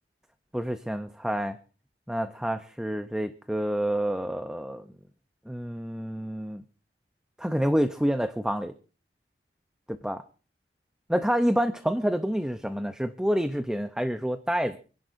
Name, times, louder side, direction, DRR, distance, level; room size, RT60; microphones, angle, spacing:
voice 1, 0.5-1.6 2.1-4.9 5.5-6.6 7.4-8.7 10.0-10.2 11.1-14.8, equal, 5° right, 9 dB, 0.6 m, -28 dB
28.0 x 11.0 x 2.6 m, 0.38 s
head